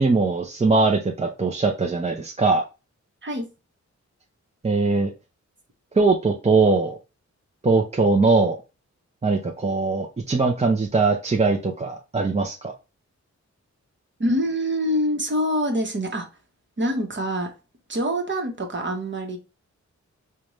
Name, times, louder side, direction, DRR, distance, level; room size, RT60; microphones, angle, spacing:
voice 1, 0.0-2.6 4.6-5.1 5.9-7.0 7.6-8.6 9.2-12.7, right 3 dB, 25° right, 0 dB, 0.4 m, -21 dB
voice 2, 14.2-16.3 16.8-17.5 17.9-19.4, equal, 40° right, 3 dB, 0.9 m, -25 dB
5.1 x 2.2 x 3.0 m, 0.29 s
wide cardioid pair, 125°, 29 cm